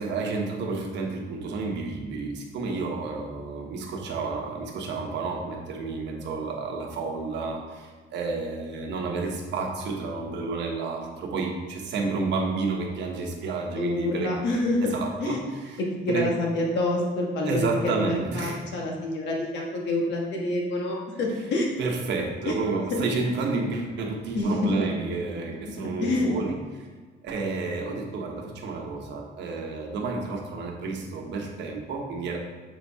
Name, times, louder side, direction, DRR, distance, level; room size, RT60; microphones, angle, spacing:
voice 1, 0.0-14.4 14.8-15.8 16.1-16.3 17.4-18.7 21.8-26.9 27.2-32.4, right 3 dB, 70° right, 1 dB, 1.1 m, -30 dB
voice 2, 13.7-15.4 15.8-21.7 22.4-22.5 22.9-23.0 24.3-24.7 26.0-26.3, left 2 dB, 65° left, -1 dB, 1.4 m, -27 dB
7.3 x 4.1 x 3.6 m, 1.4 s
cardioid pair, 160°, 19 cm